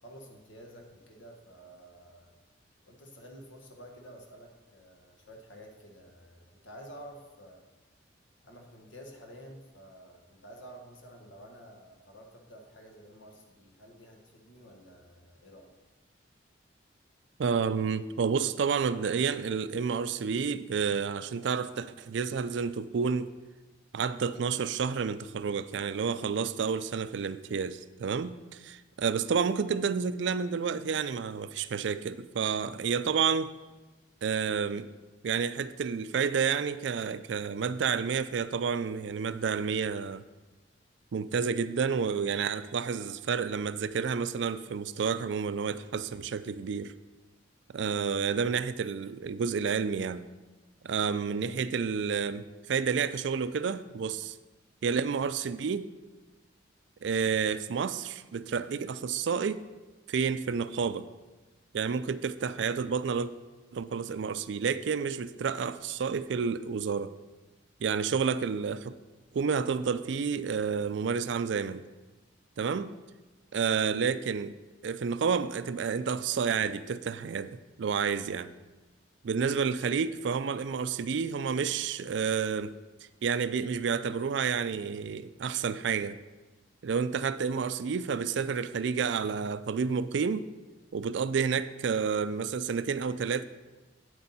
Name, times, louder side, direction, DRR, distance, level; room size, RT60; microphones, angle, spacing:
voice 1, 0.0-2.3 2.9-7.6 8.4-15.7, equal, 80° left, 1.4 m, -50 dB
voice 2, 17.4-23.3 23.9-33.5 34.2-34.9 35.2-40.2 41.1-46.9 47.7-50.3 50.8-54.4 54.8-55.9 57.0-59.6 60.1-61.1 61.7-63.3 63.7-67.1 67.8-68.9 69.3-71.8 72.6-73.0 73.5-74.5 74.8-78.5 79.2-82.8 83.2-86.2 86.8-90.5 90.9-93.4, right 6 dB, 70° right, 0.4 m, -30 dB
8.6 x 8.1 x 4.2 m
head